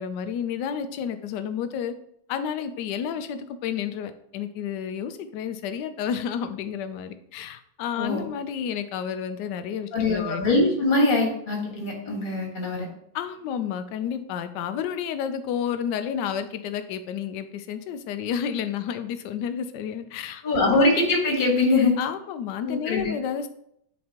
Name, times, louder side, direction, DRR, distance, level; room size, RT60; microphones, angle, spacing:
voice 1, 0.0-1.9 2.3-10.4 13.1-20.8 22.0-23.5, left 8 dB, 70° left, 10 dB, 1.1 m, -31 dB
voice 2, 9.9-12.9 20.4-22.0 22.6-23.1, left 2 dB, 25° left, -1 dB, 1.4 m, -22 dB
8.4 x 4.2 x 2.9 m, 0.73 s
omnidirectional pair, 2.2 m